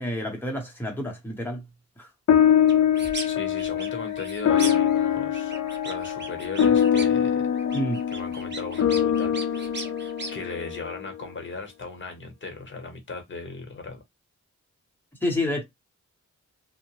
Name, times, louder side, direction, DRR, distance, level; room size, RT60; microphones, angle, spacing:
voice 1, 0.0-1.7 2.0-2.1 7.7-8.0 15.2-15.6, left 1 dB, 5° left, 0.8 m, -29 dB
sound 1, 2.3-11.0, left 9 dB, 65° left, 0.5 m, -23 dB
sound 2, 2.7-3.3 3.6-5.0 5.3-7.2 7.5-10.3, right 3 dB, 35° right, 0.6 m, -38 dB
voice 2, 3.2-5.5 5.8-7.4 8.1-9.6 10.3-14.0, left 3 dB, 40° left, 0.9 m, -37 dB
2.8 x 2.1 x 2.9 m
wide cardioid pair, 150°, 30 cm